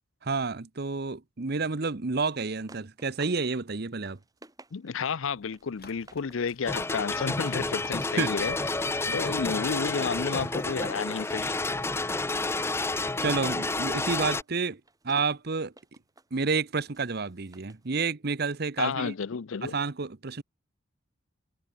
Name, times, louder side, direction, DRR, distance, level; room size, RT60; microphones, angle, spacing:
voice 1, 0.2-4.2 8.1-8.3 10.4-10.5 13.2-15.7 16.3-19.1 19.6-20.4, right 4 dB, 50° right, 0.9 m, -30 dB
sound 1, 2.4-3.5 3.8-5.1 5.5-6.5 6.8-7.7 8.5-11.5 11.8-17.9, right 2 dB, 20° right, 5.0 m, -56 dB
voice 2, 4.7-8.6 9.0-11.6 18.8-19.8, left 5 dB, 75° left, 0.5 m, -31 dB
sound 2, 5.2-11.7, left 7 dB, 50° left, 5.3 m, -56 dB
sound 3, 6.7-14.4, left 2 dB, 10° left, 0.6 m, -30 dB
head